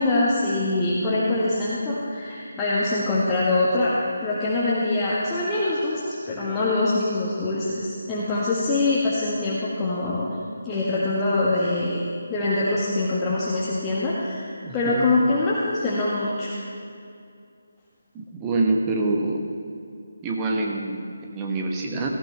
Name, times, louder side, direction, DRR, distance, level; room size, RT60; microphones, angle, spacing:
voice 1, 0.0-3.9 4.2-10.4 10.6-12.0 12.3-16.5, left 2 dB, 15° left, -8 dB, 1.6 m, -24 dB
voice 2, 14.6-15.1 18.1-19.4 20.2-22.1, right 2 dB, 15° right, 0 dB, 1.2 m, -26 dB
17.5 x 15.0 x 3.4 m, 2.4 s
figure-of-eight pair, 150°, 0 cm